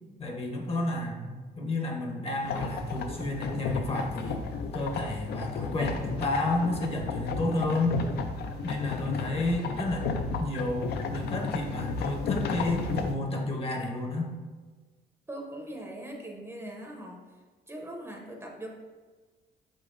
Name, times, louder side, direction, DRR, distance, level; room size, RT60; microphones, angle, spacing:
voice 1, 0.2-4.4 4.7-8.0 8.6-10.1 10.4-14.3, left 2 dB, 35° left, 1 dB, 0.7 m, -31 dB
sound 1, 2.4-13.1, left 4 dB, 75° left, 0.4 m, -33 dB
voice 2, 15.3-17.3 17.7-18.7, right 1 dB, 15° right, 0 dB, 0.6 m, -41 dB
5.3 x 3.6 x 2.5 m, 1.4 s
cardioid pair, 105°, 17 cm